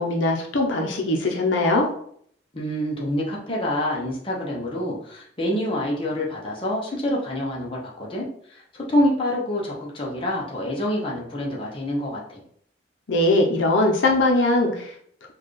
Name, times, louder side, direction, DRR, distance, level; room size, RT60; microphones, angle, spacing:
voice 1, 0.0-1.9 13.1-14.9, left 2 dB, 75° left, 1 dB, 0.7 m, -21 dB
voice 2, 2.5-12.4, left 1 dB, 25° left, -3 dB, 0.8 m, -27 dB
4.4 x 2.4 x 3.2 m, 0.64 s
head